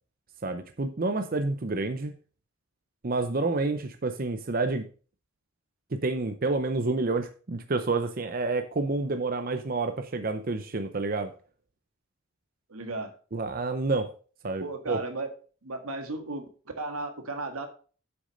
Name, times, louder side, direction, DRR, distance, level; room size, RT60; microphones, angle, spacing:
voice 1, 0.4-2.1 3.0-4.8 6.0-11.3 13.3-14.1 14.4-15.0, right 3 dB, 40° right, 8 dB, 0.6 m, -29 dB
voice 2, 12.7-13.1 14.6-15.3 15.6-16.5 16.8-17.7, right 2 dB, 90° right, 6 dB, 1.7 m, -34 dB
8.0 x 6.3 x 5.1 m, 0.39 s
head